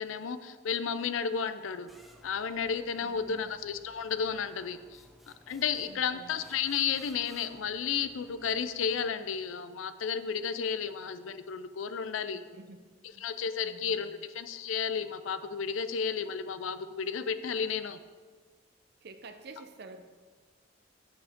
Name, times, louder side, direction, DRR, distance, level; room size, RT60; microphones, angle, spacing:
voice 1, 0.0-1.9 2.2-5.0 5.5-12.4 13.2-18.0, left 6 dB, 80° left, 13 dB, 0.4 m, -32 dB
sound 1, 1.9-9.3, equal, ahead, 0.5 m, -58 dB
voice 2, 3.0-3.5 5.9-6.4 12.3-12.9 13.1-13.3 13.6-14.2 19.0-20.0, right 3 dB, 55° right, 8 dB, 0.6 m, -50 dB
7.9 x 7.0 x 3.6 m, 1.5 s
head